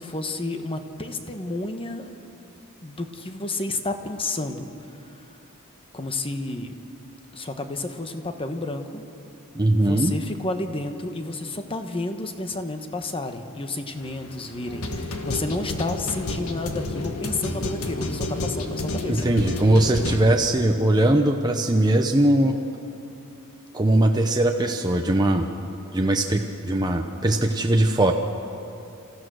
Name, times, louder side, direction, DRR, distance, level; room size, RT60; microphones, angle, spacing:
voice 1, 0.0-2.1 2.8-4.7 5.9-6.7 7.3-9.0 9.8-19.2, left 2 dB, 25° left, 7 dB, 1.2 m, -31 dB
voice 2, 9.5-10.1 19.1-22.6 23.7-25.5 25.9-28.1, right 1 dB, 20° right, 2 dB, 0.8 m, -20 dB
sound 1, 14.0-20.1, left 2 dB, 75° left, 1.7 m, -30 dB
27.5 x 15.0 x 6.4 m, 2.7 s
head